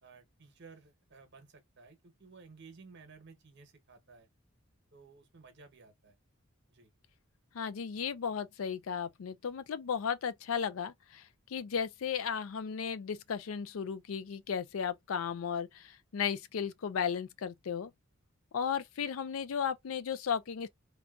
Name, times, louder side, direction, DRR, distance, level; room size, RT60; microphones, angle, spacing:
voice 1, 0.0-4.3 4.9-6.2 6.7-6.9, right 4 dB, 60° right, 1.0 m, -56 dB
voice 2, 7.5-17.9 18.5-20.7, left 7 dB, 85° left, 0.4 m, -35 dB
3.8 x 2.3 x 2.4 m
head